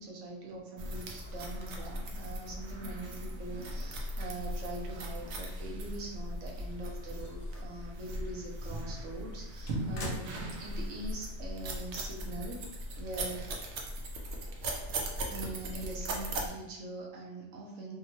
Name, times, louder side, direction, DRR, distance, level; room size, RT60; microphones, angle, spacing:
voice 1, 0.0-10.3 10.6-12.6 13.0-13.5 15.3-18.0, right 2 dB, 90° right, -1 dB, 1.0 m, -43 dB
sound 1, 0.8-16.5, right 1 dB, 70° right, 0.8 m, -38 dB
sound 2, 6.8-7.8 8.2-8.4 8.8-11.0 11.3-11.4 12.6-12.7, left 1 dB, 60° left, 0.7 m, -45 dB
2.8 x 2.2 x 2.9 m, 0.95 s
omnidirectional pair, 1.3 m